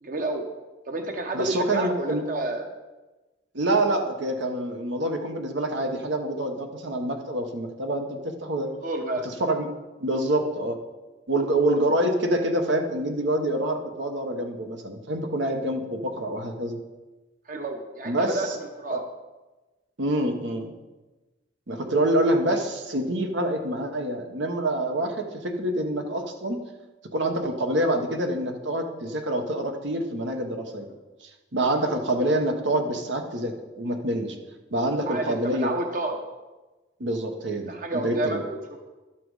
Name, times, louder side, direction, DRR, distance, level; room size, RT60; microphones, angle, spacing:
voice 1, 0.0-0.5 0.9-2.7 8.8-9.3 17.5-19.0 30.9-31.0 31.7-31.8 35.1-36.2 37.7-38.6, right 2 dB, 45° right, 4 dB, 0.9 m, -30 dB
voice 2, 1.3-2.2 3.5-8.7 9.4-9.7 10.0-10.8 11.3-16.8 18.0-18.6 18.9-19.0 20.0-20.7 21.7-26.6 27.1-30.9 31.2-34.4 34.7-35.7 37.0-37.7 38.0-38.4, right 1 dB, 85° right, 4 dB, 1.1 m, -26 dB
12.0 x 6.0 x 4.8 m, 1.1 s
head